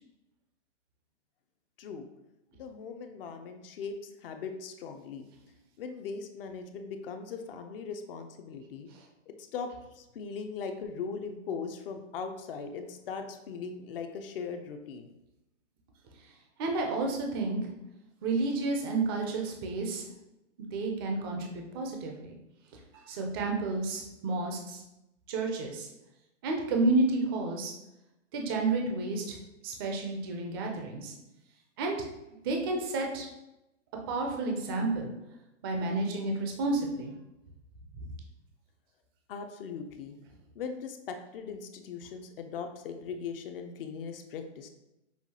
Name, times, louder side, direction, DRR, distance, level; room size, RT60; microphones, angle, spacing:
voice 1, 2.6-4.0 4.2-5.3 5.8-8.9 9.3-9.7 10.0-15.1 39.3-40.2 40.6-44.7, left 5 dB, 50° left, 6 dB, 0.5 m, -39 dB
voice 2, 16.6-17.6 18.2-20.0 20.6-22.4 22.9-24.8 25.3-25.9 26.4-27.7 28.3-29.4 29.6-31.1 31.8-32.0 32.4-33.3 34.1-35.1 35.6-37.1 38.0-38.1, right 3 dB, 20° right, 1 dB, 0.3 m, -30 dB
5.6 x 2.3 x 2.7 m, 0.92 s
hypercardioid pair, 140°, 37 cm